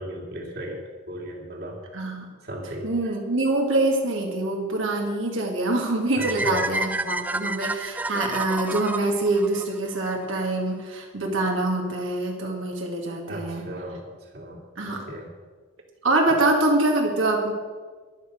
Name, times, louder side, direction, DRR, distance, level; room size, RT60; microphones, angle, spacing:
voice 1, 0.0-1.8 2.4-3.1 6.1-6.7 13.3-15.3 16.3-16.4, equal, 50° right, 0 dB, 2.4 m, -36 dB
voice 2, 1.9-2.3 2.8-13.7 14.8-15.1 16.0-17.5, right 2 dB, 85° right, 0 dB, 2.3 m, -25 dB
sound 1, 6.2-10.3, right 2 dB, 10° right, 0.3 m, -30 dB
12.0 x 11.0 x 6.5 m, 1.5 s
head